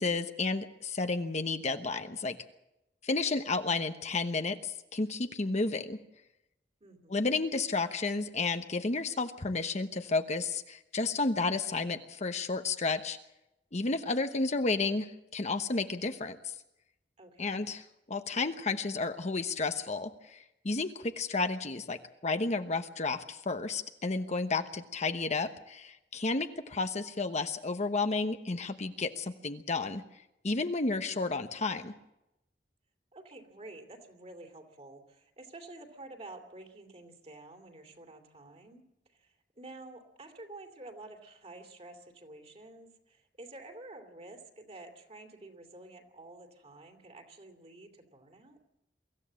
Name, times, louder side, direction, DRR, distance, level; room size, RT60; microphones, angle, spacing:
voice 1, 0.0-2.4 3.0-6.0 7.1-13.2 13.7-16.4 17.4-20.4 20.6-22.0 22.2-30.0 30.4-31.9, left 3 dB, 40° left, 8 dB, 1.0 m, -32 dB
voice 2, 6.8-7.2 17.2-17.7 33.1-48.6, right 2 dB, 35° right, 5 dB, 2.7 m, -50 dB
24.0 x 15.0 x 7.6 m, 0.90 s
head